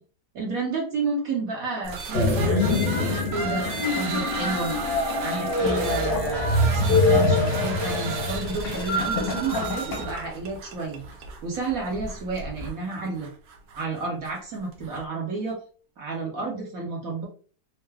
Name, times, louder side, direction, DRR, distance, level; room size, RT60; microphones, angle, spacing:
voice 1, 0.3-4.7 5.2-11.0 11.4-13.3 13.8-15.6 16.0-17.2, right 3 dB, 55° right, -2 dB, 1.4 m, -31 dB
sound 1, 1.8-15.0, right 4 dB, 85° right, 1.4 m, -35 dB
sound 2, 2.1-10.3, left 2 dB, 55° left, 0.7 m, -25 dB
Gurgling / Toilet flush, 5.4-10.3 11.1-11.2, left 4 dB, 80° left, 1.7 m, -35 dB
4.6 x 2.0 x 3.3 m, 0.40 s
omnidirectional pair, 1.9 m